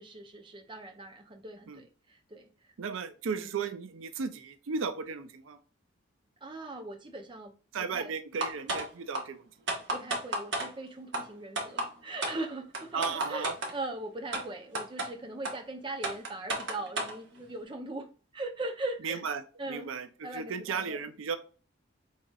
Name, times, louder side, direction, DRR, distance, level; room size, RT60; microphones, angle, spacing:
voice 1, 0.0-2.5 2.9-3.0 3.4-3.6 6.4-7.5 7.9-8.1 9.9-18.1 18.3-19.2 19.6-19.9 20.2-21.0, right 2 dB, 25° right, 4 dB, 0.5 m, -40 dB
voice 2, 2.8-5.6 7.7-9.8 12.9-13.5 19.0-19.4 19.7-21.4, right 5 dB, 85° right, 10 dB, 0.5 m, -35 dB
sound 1, 8.4-8.8 9.1-9.2 9.7-10.7 11.1-11.2 11.6-11.9 12.2-12.3 12.7-13.7 14.3-14.4 14.7-15.1 15.4-15.5 16.0-17.1, right 2 dB, 65° right, 1.1 m, -31 dB
5.3 x 3.7 x 2.3 m, 0.37 s
head